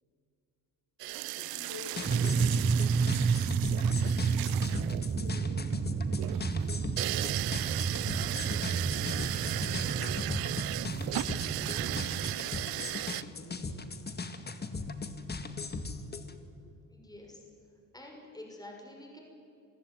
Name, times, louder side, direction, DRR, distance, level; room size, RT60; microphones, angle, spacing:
sound 1, 1.0-13.2, right 18 dB, 90° right, 0.7 m, -36 dB
voice 1, 1.3-2.8 3.6-4.2 4.8-6.6 7.9-10.5 10.8-12.7 13.4-13.9 15.7-15.9, left 2 dB, 55° left, 3 dB, 5.3 m, -48 dB
sound 2, 1.9-16.3, left 3 dB, 30° left, 2.0 m, -39 dB
sound 3, 2.0-12.4, right 5 dB, 25° right, 0.8 m, -31 dB
voice 2, 16.9-17.4 17.9-19.2, left 1 dB, 10° left, 0 dB, 6.0 m, -48 dB
27.0 x 15.5 x 9.9 m, 2.5 s
cardioid pair, 90°, 35 cm